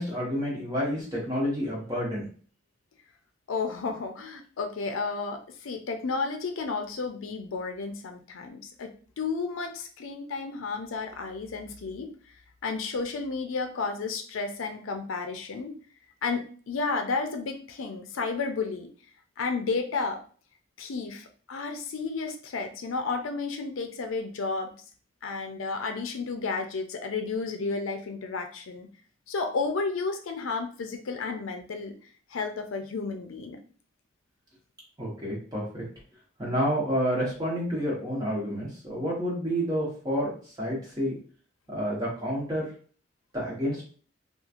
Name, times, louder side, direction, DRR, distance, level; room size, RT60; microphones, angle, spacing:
voice 1, 0.0-2.2 35.0-35.8 36.4-40.3 40.6-41.2 41.7-42.7 43.3-43.8, equal, 20° right, -6 dB, 1.1 m, -29 dB
voice 2, 3.5-8.9 9.2-12.1 12.6-15.8 16.2-18.9 19.4-20.2 20.8-24.7 25.2-28.9 29.3-32.0 32.3-33.6, left 4 dB, 80° left, 5 dB, 0.4 m, -32 dB
2.9 x 2.3 x 2.4 m, 0.42 s
head